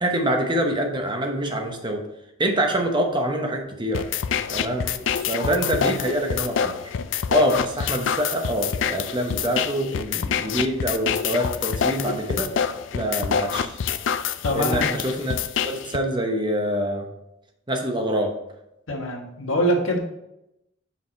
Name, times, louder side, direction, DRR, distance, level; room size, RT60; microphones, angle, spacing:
voice 1, 0.0-2.0 2.4-4.1 4.5-6.7 7.3-12.5 12.9-13.8 14.5-15.3 15.6-17.0 17.7-18.3, right 1 dB, 25° right, 3 dB, 0.8 m, -25 dB
sound 1, 3.9-16.0, left 7 dB, 65° left, 0.4 m, -26 dB
voice 2, 14.4-14.9 18.9-20.0, equal, 80° left, 1 dB, 1.3 m, -24 dB
5.8 x 4.8 x 4.3 m, 0.86 s
head